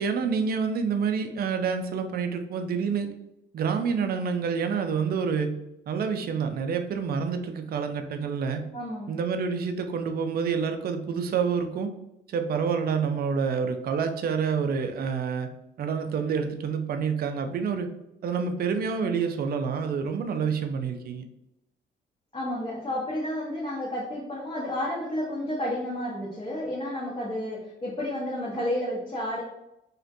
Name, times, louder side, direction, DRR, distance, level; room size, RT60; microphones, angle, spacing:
voice 1, 0.0-3.1 3.5-5.5 5.9-8.6 9.1-11.9 12.3-15.5 15.8-17.9 18.2-21.2, right 6 dB, 50° right, 6 dB, 0.4 m, -28 dB
voice 2, 8.7-9.1 22.3-29.4, left 1 dB, 30° left, -6 dB, 0.7 m, -31 dB
2.4 x 2.1 x 2.6 m, 0.86 s
cardioid pair, 90°, 20 cm